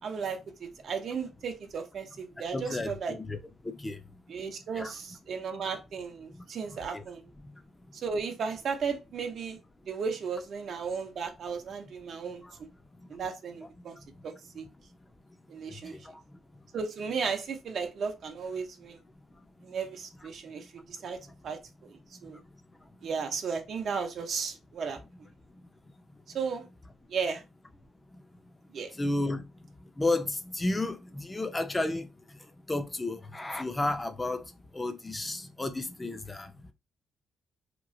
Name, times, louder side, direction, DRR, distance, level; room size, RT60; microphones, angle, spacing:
voice 1, 0.0-3.2 4.3-7.3 7.9-9.6 9.8-12.4 13.1-14.0 14.2-14.7 15.5-16.0 16.7-19.0 19.6-21.2 21.4-22.4 23.0-25.0 26.3-26.7 27.1-27.4 28.7-28.9, right 5 dB, 60° right, 0.6 m, -35 dB
voice 2, 2.5-2.9 3.3-3.4 3.8-4.0 4.7-4.9 6.9-7.0 29.0-29.4 30.0-32.1 32.7-34.4 34.7-36.5, left 2 dB, 15° left, 0.5 m, -31 dB
2.9 x 2.4 x 2.6 m
cardioid pair, 90°, 0 cm